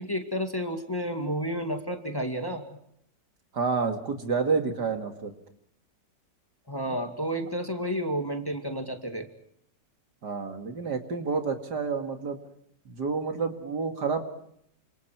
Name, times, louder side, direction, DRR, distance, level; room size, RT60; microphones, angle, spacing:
voice 1, 0.0-2.6 6.7-9.3, equal, 15° left, 5 dB, 2.1 m, -31 dB
voice 2, 3.5-5.3 6.8-7.0 10.2-12.4 12.9-14.2, right 5 dB, 70° right, 5 dB, 2.8 m, -29 dB
28.5 x 27.0 x 4.7 m, 0.71 s
omnidirectional pair, 1.9 m